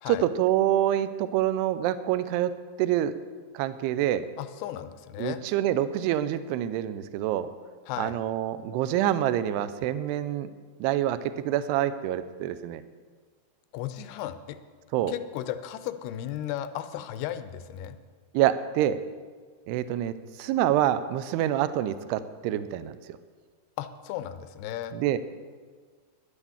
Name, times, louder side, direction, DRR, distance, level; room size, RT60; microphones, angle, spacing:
voice 1, 0.1-2.5 2.8-3.1 3.5-4.3 5.2-7.5 8.0-10.5 10.8-12.8 14.9-15.1 18.3-19.0 19.7-20.1 20.4-23.0 24.9-25.2, right 12 dB, 85° right, 12 dB, 2.6 m, -26 dB
voice 2, 4.4-5.4 7.9-8.2 13.7-14.6 15.1-18.0 23.8-25.0, left 11 dB, 80° left, 11 dB, 2.5 m, -35 dB
11.0 x 9.9 x 7.1 m, 1.5 s
omnidirectional pair, 4.7 m